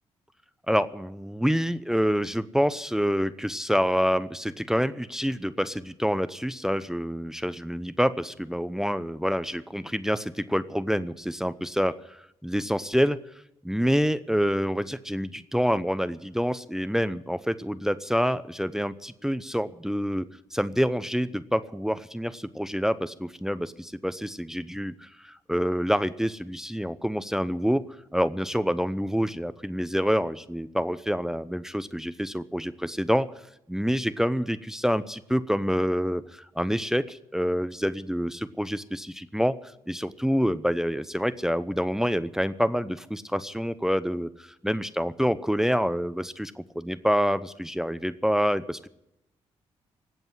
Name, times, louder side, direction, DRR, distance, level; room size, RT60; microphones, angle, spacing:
voice 1, 0.7-13.2 13.6-27.8 28.1-33.3 33.7-48.9, equal, 5° right, 15 dB, 0.8 m, -27 dB
19.0 x 8.0 x 9.6 m, 0.83 s
hypercardioid pair, 40°, 15 cm